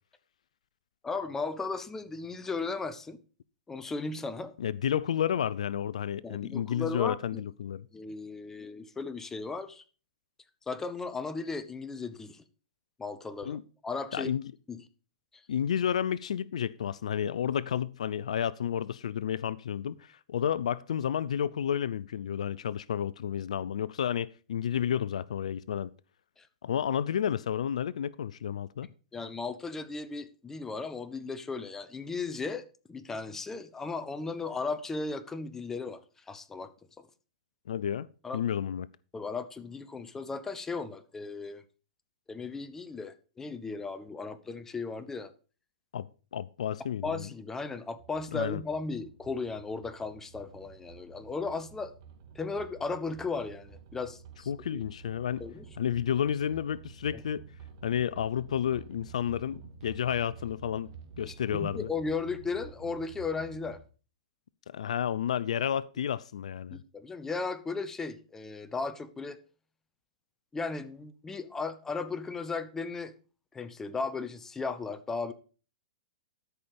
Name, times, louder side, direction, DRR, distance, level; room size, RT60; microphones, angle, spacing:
voice 1, 1.0-3.2 3.7-4.5 6.2-7.4 7.9-9.8 10.7-12.4 13.0-14.3 14.7-14.8 26.4-26.5 29.1-36.0 36.3-36.7 37.0-37.1 38.2-38.4 39.1-41.6 42.3-45.3 47.0-51.9 52.3-54.8 55.4-55.6 57.1-57.2 61.2-63.8 66.7-69.4 70.5-73.1 73.5-75.3, left 4 dB, 10° left, 0.9 m, -36 dB
voice 2, 4.6-7.9 13.4-13.6 14.1-14.5 15.5-25.9 26.6-28.9 37.7-38.9 45.9-47.3 48.3-48.6 54.5-55.5 55.8-57.5 57.8-60.9 61.2-61.9 64.7-66.8, left 9 dB, 75° left, 0.4 m, -31 dB
sound 1, 48.0-63.8, right 7 dB, 55° right, 2.3 m, -50 dB
13.0 x 5.6 x 5.0 m
hypercardioid pair, 120°, 4 cm